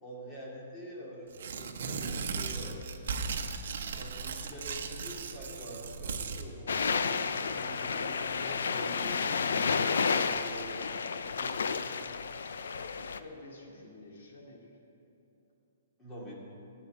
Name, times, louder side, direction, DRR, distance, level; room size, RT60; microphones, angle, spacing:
voice 1, 0.0-2.8 4.0-10.8 11.3-11.9 16.0-16.4, equal, 10° left, -5 dB, 2.5 m, -45 dB
Tearing, 1.3-6.5, right 5 dB, 60° right, 1.0 m, -37 dB
sound 1, 6.7-13.2, left 5 dB, 80° left, 0.6 m, -31 dB
voice 2, 12.9-14.8, left 2 dB, 60° left, -1 dB, 2.6 m, -50 dB
15.5 x 5.2 x 8.3 m, 2.9 s
hypercardioid pair, 165°, 0 cm